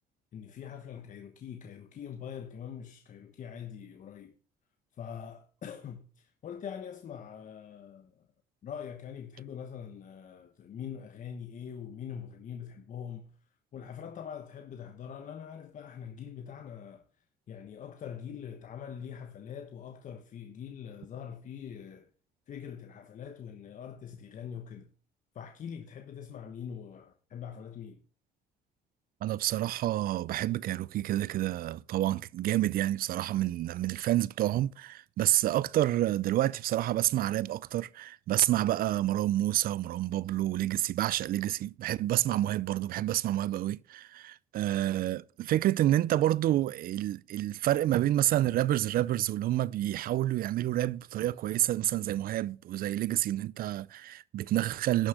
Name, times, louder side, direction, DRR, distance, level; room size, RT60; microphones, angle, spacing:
voice 1, 0.3-4.3 5.0-8.3 8.6-13.4 13.7-17.0 17.5-22.1 22.5-24.9 25.3-28.0, left 8 dB, 50° left, 1.1 m, -43 dB
voice 2, 29.2-55.1, right 14 dB, 60° right, 0.5 m, -29 dB
11.5 x 6.3 x 6.4 m
cardioid pair, 110°, 17 cm